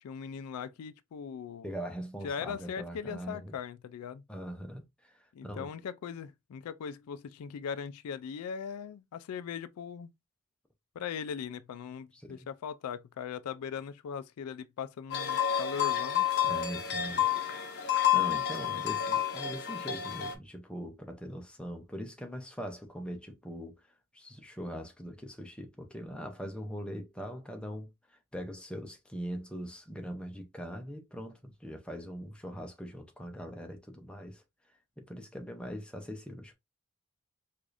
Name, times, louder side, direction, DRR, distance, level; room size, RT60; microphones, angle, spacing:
voice 1, 0.0-1.7 2.2-4.2 5.3-10.1 11.0-16.3 17.0-17.3 18.7-18.8, left 7 dB, 85° left, 0.3 m, -39 dB
voice 2, 1.6-3.6 4.3-5.7 12.1-12.4 16.4-17.2 17.8-17.9 18.1-23.8 24.1-34.4 35.0-36.5, equal, 5° left, 0.6 m, -41 dB
sound 1, 15.1-20.3, left 10 dB, 45° left, 0.7 m, -29 dB
4.7 x 2.5 x 2.5 m
head